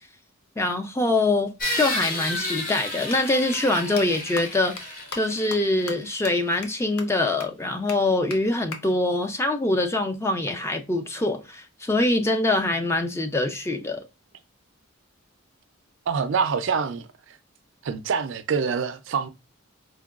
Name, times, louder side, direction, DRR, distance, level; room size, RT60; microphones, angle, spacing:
voice 1, 0.6-14.0, left 2 dB, 10° left, 0.3 m, -24 dB
sound 1, 1.6-6.3, left 2 dB, 40° left, 0.8 m, -32 dB
sound 2, 3.1-3.2 3.5-3.6 4.0-4.1 4.4-4.5 4.8-4.9 5.1-5.2 5.5-5.6 5.9-6.0 6.2-6.3 6.6-6.7 7.0-7.1 7.4-7.5 7.9-8.0 8.3-8.4 8.7-8.8 10.4-11.5, left 5 dB, 85° left, 0.7 m, -37 dB
voice 2, 16.1-17.4 17.8-19.3, right 6 dB, 60° right, 0.4 m, -26 dB
4.5 x 2.2 x 2.3 m
head